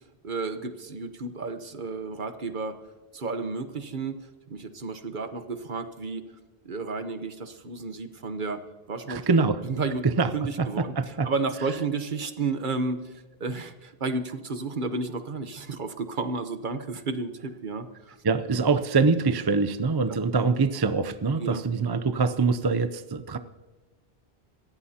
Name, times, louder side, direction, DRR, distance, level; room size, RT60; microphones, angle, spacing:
voice 1, 0.2-2.8 3.1-4.2 4.5-6.3 6.6-9.2 9.6-10.0 10.3-10.9 11.2-18.2 21.4-21.6, right 3 dB, 55° right, 9 dB, 1.1 m, -32 dB
voice 2, 9.1-9.6 10.0-10.3 10.6-11.3 18.2-23.4, right 4 dB, 30° right, 11 dB, 0.5 m, -24 dB
26.5 x 14.5 x 2.8 m, 1.2 s
omnidirectional pair, 1.0 m